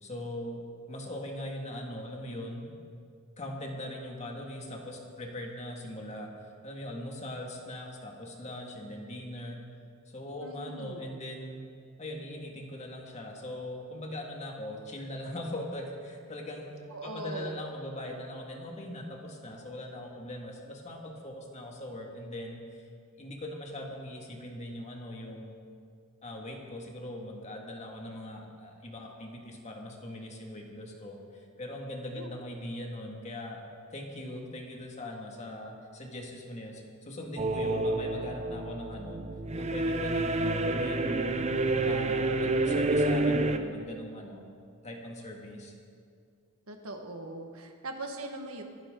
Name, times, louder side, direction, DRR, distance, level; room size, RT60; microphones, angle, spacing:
voice 1, 0.0-2.7 3.4-6.3 6.6-9.6 10.1-11.6 12.0-22.9 23.2-25.6 26.2-33.6 33.9-39.2 39.5-41.4 41.8-44.4 44.8-45.7, left 1 dB, 30° left, 0 dB, 2.1 m, -40 dB
voice 2, 10.4-11.0 16.9-17.6 32.1-32.3 46.7-48.6, right 2 dB, 80° right, 4 dB, 1.6 m, -40 dB
sound 1, 37.4-43.6, right 2 dB, 30° right, 0.7 m, -28 dB
25.0 x 11.0 x 3.9 m, 2.3 s
head